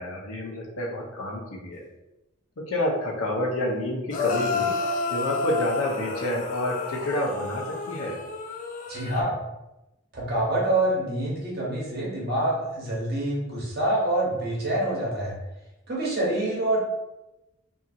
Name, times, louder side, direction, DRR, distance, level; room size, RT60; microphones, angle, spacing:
voice 1, 0.0-1.8 2.6-4.7 5.1-8.2, left 1 dB, 90° left, -1 dB, 0.7 m, -29 dB
sound 1, 4.1-9.2, left 4 dB, 40° left, 0.3 m, -30 dB
voice 2, 8.9-9.3 10.1-15.3 15.9-16.8, right 1 dB, 50° right, -4 dB, 0.9 m, -26 dB
2.7 x 2.4 x 2.7 m, 0.96 s
head